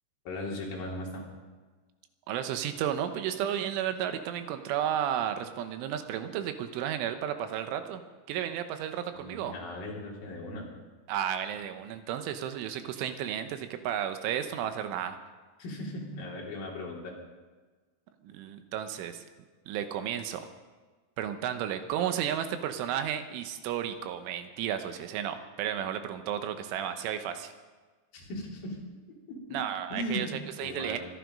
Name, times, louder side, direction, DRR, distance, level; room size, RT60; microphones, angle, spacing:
voice 1, 0.2-1.2 9.1-10.7 15.6-17.2 28.1-28.8 29.3-29.6 29.9-31.0, left 1 dB, 50° left, -3 dB, 4.6 m, -37 dB
voice 2, 2.3-8.0 8.3-9.5 11.1-15.2 18.2-19.2 19.7-20.4 21.2-27.5 29.5-30.3 30.6-31.0, right 10 dB, 85° right, 8 dB, 3.5 m, -33 dB
24.0 x 11.0 x 5.3 m, 1.3 s
omnidirectional pair, 5.5 m